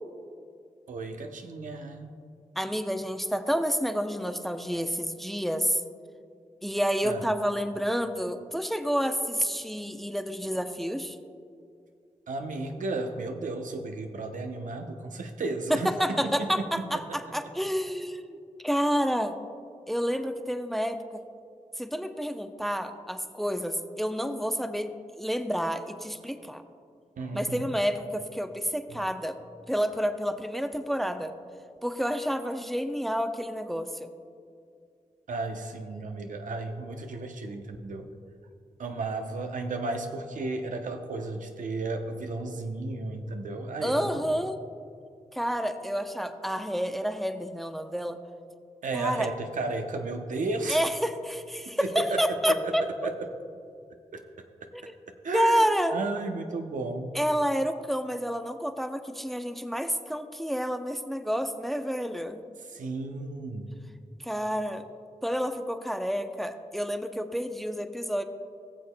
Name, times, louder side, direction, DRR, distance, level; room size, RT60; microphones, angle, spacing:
voice 1, 0.9-2.1 7.0-7.3 12.3-17.0 27.2-27.7 35.3-38.1 38.8-44.2 48.8-50.8 51.8-52.7 53.0-53.3 54.1-54.2 55.2-57.2 62.6-63.7, right 3 dB, 80° right, 5 dB, 0.7 m, -34 dB
voice 2, 2.6-5.8 6.6-11.2 15.7-18.4 18.6-19.4 19.9-21.2 21.8-26.6 27.3-29.4 29.7-31.3 31.8-34.1 43.8-44.6 45.3-48.2 48.9-49.3 50.7-52.8 54.7-54.8 55.3-56.0 57.1-62.4 64.2-64.8 65.2-68.2, equal, ahead, 8 dB, 0.6 m, -29 dB
19.5 x 7.0 x 2.2 m, 2.3 s
cardioid pair, 50°, 13 cm